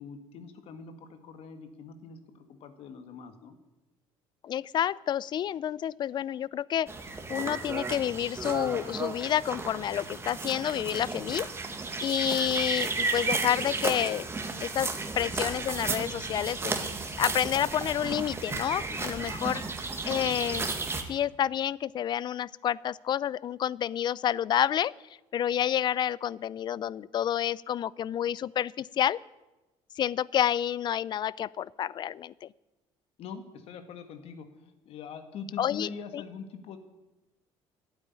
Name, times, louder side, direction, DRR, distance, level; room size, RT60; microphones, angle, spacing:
voice 1, 0.0-3.6 18.9-19.0 33.2-34.5 34.9-36.8, left 6 dB, 65° left, 8 dB, 1.7 m, -43 dB
voice 2, 4.4-6.9 7.3-11.5 12.0-14.3 14.6-16.8 17.2-19.6 20.0-20.7 21.1-24.9 25.3-29.2 30.0-32.5 35.6-36.2, left 10 dB, 45° left, 22 dB, 0.4 m, -29 dB
sound 1, 6.9-21.0, right 3 dB, 25° right, 1.7 m, -33 dB
12.0 x 8.9 x 9.6 m, 1.1 s
cardioid pair, 110°, 11 cm